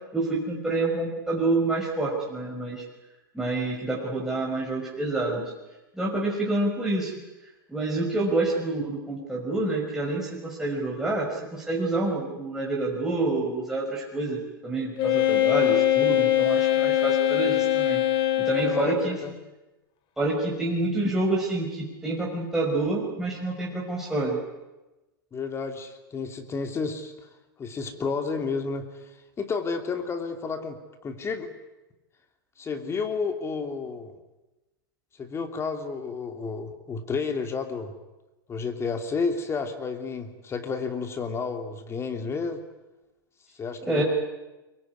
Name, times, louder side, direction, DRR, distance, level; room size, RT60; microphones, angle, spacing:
voice 1, 0.1-2.8 3.3-5.5 5.9-7.1 7.7-18.0 18.4-19.2 20.2-24.4 43.8-44.0, right 2 dB, 5° right, -4 dB, 5.5 m, -27 dB
Wind instrument woodwind instrument, 15.0-19.0, left 13 dB, 40° left, 3.0 m, -22 dB
voice 2, 18.6-19.3 25.3-27.3 27.6-31.5 32.6-34.1 35.1-37.9 38.5-42.6 43.6-44.0, left 4 dB, 20° left, 5 dB, 3.2 m, -31 dB
25.0 x 22.0 x 9.6 m, 1.1 s
hypercardioid pair, 105°, 12 cm